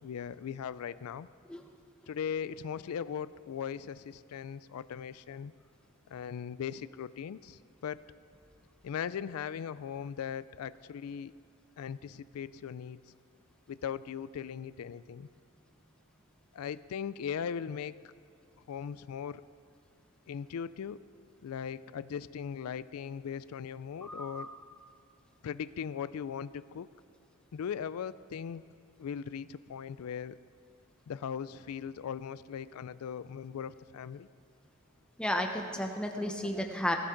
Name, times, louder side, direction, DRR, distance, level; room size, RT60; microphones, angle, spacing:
voice 1, 0.0-1.3 2.1-5.5 6.1-8.0 8.8-11.3 11.8-13.0 13.7-15.3 16.5-18.0 18.7-19.4 20.3-21.0 21.4-24.5 25.4-26.9 27.5-28.7 29.0-30.4 31.1-34.3, left 7 dB, 90° left, 16 dB, 0.4 m, -39 dB
voice 2, 24.0-24.5 35.2-37.0, left 1 dB, 5° left, 3 dB, 1.0 m, -33 dB
16.5 x 15.5 x 3.9 m, 2.2 s
head